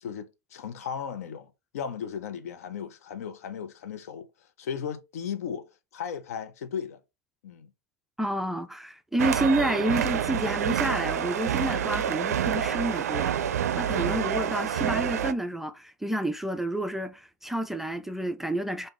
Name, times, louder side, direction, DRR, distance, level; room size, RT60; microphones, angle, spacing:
voice 1, 0.0-4.3 4.6-7.0 7.4-7.7 14.0-14.3, left 7 dB, 65° left, 0.6 m, -36 dB
voice 2, 8.2-13.3 13.8-18.9, right 1 dB, 5° right, 0.3 m, -29 dB
sound 1, 9.2-15.3, right 9 dB, 70° right, 0.4 m, -27 dB
3.4 x 2.7 x 3.2 m
figure-of-eight pair, 95°, 9 cm